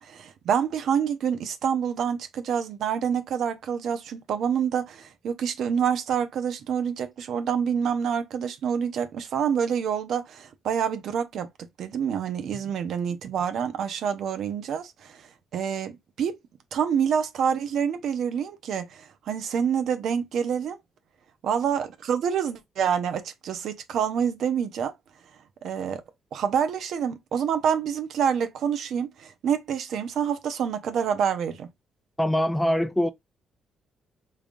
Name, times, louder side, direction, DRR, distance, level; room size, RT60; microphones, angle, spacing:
voice 1, 0.0-11.5 11.8-15.2 15.5-16.4 16.7-20.8 21.4-24.9 25.6-26.0 26.3-31.7, right 7 dB, 70° right, 0.7 m, -27 dB
voice 2, 32.2-33.1, equal, 10° left, 0.4 m, -23 dB
3.7 x 3.3 x 2.5 m
cardioid pair, 90°, 0 cm